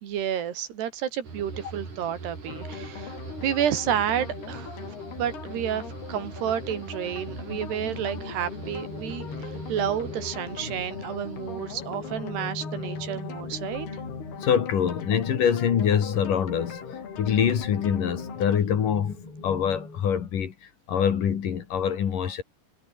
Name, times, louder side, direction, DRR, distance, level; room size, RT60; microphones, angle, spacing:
voice 1, 0.0-13.9, right 9 dB, 80° right, 4.5 m, -30 dB
sound 1, 1.2-14.6 14.9-15.5, right 4 dB, 50° right, 7.4 m, -42 dB
sound 2, 2.5-18.6, left 8 dB, 75° left, 5.1 m, -41 dB
sound 3, 7.3-20.0, left 2 dB, 30° left, 8.7 m, -40 dB
voice 2, 14.4-19.2 19.4-20.5 20.9-22.4, left 8 dB, 55° left, 3.6 m, -25 dB
omnidirectional pair, 4.7 m